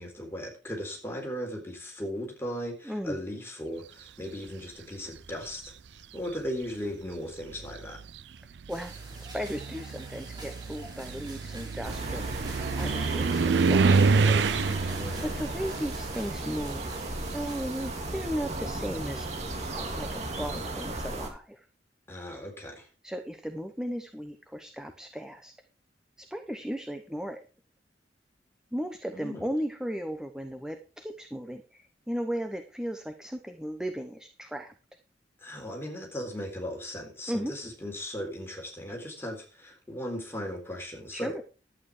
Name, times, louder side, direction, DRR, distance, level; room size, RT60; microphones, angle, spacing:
voice 1, 0.0-5.7 6.1-8.0 15.0-15.4 22.1-22.9 29.1-29.4 35.4-41.4, equal, 15° left, 1 dB, 3.9 m, -37 dB
voice 2, 2.8-3.2 8.7-9.0 9.3-14.8 15.2-19.3 19.7-21.7 23.0-25.5 26.2-27.5 28.7-34.7 37.3-37.7 41.1-41.4, equal, 5° right, 6 dB, 0.9 m, -36 dB
sound 1, 5.2-5.7 6.7-6.8 7.4-17.3 17.6-20.2, right 4 dB, 75° right, 0.5 m, -28 dB
sound 2, 8.7-18.6, right 2 dB, 25° right, 4.6 m, -47 dB
sound 3, 11.8-21.3, right 2 dB, 40° right, 2.8 m, -35 dB
11.5 x 8.8 x 5.0 m, 0.34 s
head